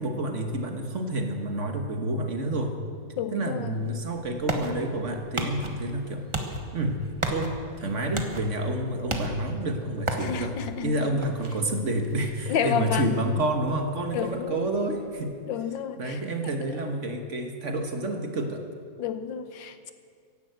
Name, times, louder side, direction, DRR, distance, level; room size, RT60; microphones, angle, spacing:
voice 1, 0.0-2.8 3.3-6.2 6.7-7.0 7.3-10.6 10.8-15.3 16.0-18.6, right 1 dB, 45° right, 5 dB, 1.5 m, -29 dB
voice 2, 3.2-3.7 10.2-11.1 12.5-13.1 14.1-14.6 15.4-16.2 19.0-19.9, left 8 dB, 80° left, 10 dB, 1.6 m, -30 dB
sound 1, 3.7-15.2, right 1 dB, 20° right, 1.1 m, -36 dB
16.0 x 11.0 x 7.9 m, 2.2 s
omnidirectional pair, 2.0 m